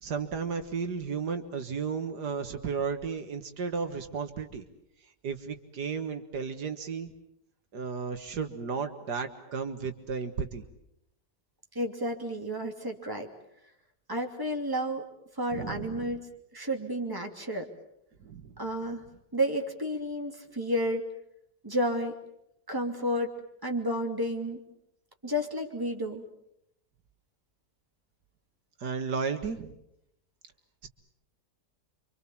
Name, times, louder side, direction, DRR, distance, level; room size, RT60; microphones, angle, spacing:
voice 1, 0.0-4.7 5.2-7.1 7.7-10.6 15.5-16.2 18.2-18.5 28.8-29.7 30.8-30.9, right 5 dB, 75° right, 7 dB, 2.1 m, -34 dB
voice 2, 11.7-13.3 14.1-15.0 15.4-16.2 16.5-17.7 18.6-19.0 19.3-21.0 21.6-22.1 22.7-23.3 23.6-24.6 25.2-26.2, equal, 10° right, 2 dB, 2.8 m, -31 dB
28.0 x 25.5 x 7.3 m, 0.78 s
omnidirectional pair, 1.8 m